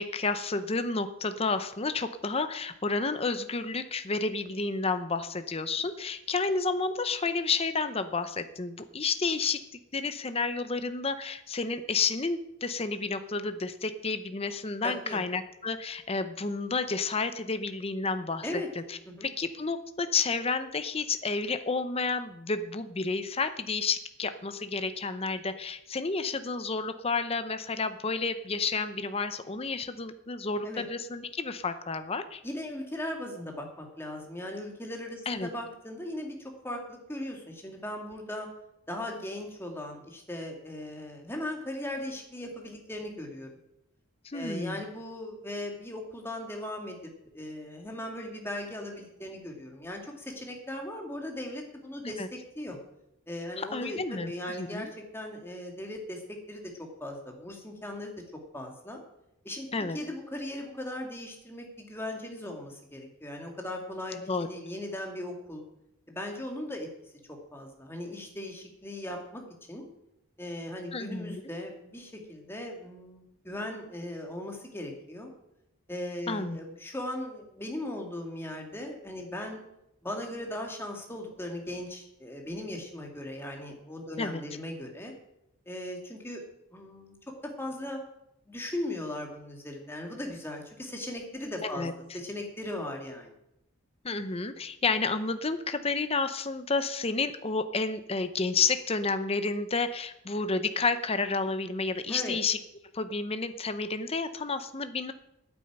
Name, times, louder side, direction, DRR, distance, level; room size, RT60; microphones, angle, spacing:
voice 1, 0.0-18.6 18.9-32.4 35.3-35.5 44.2-44.8 52.0-52.3 53.6-54.3 54.6-54.9 59.7-60.0 64.3-64.5 70.9-71.4 76.3-76.6 84.2-84.4 91.6-91.9 94.0-102.6 102.9-105.1, left 4 dB, 30° left, 10 dB, 0.7 m, -31 dB
voice 2, 14.8-15.2 18.4-18.7 19.1-19.3 30.6-30.8 32.4-38.5 38.9-43.5 44.3-47.0 47.3-52.8 53.3-56.7 57.0-58.1 58.5-59.0 59.4-59.7 59.9-65.6 66.1-66.9 67.5-69.4 69.7-69.9 70.4-75.3 75.9-79.6 80.0-85.1 85.7-86.4 86.7-87.1 87.6-88.0 88.5-91.9 92.1-93.3 102.1-102.3, left 1 dB, 10° left, 1 dB, 2.3 m, -38 dB
9.9 x 8.6 x 8.8 m, 0.83 s
head